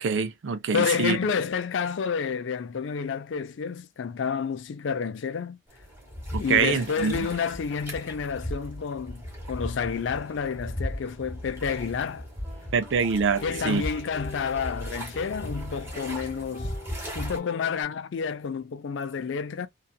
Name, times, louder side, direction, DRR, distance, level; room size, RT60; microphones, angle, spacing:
voice 1, 0.0-1.2 6.3-7.3 12.7-13.8, right 5 dB, 65° right, 0.4 m, -25 dB
voice 2, 0.7-5.6 6.4-12.3 13.4-16.7 17.1-19.7, left 6 dB, 65° left, 0.4 m, -30 dB
sound 1, 5.7-17.4, equal, 10° right, 1.2 m, -37 dB
sound 2, 12.4-17.8, left 1 dB, 10° left, 0.9 m, -45 dB
2.7 x 2.3 x 2.3 m
head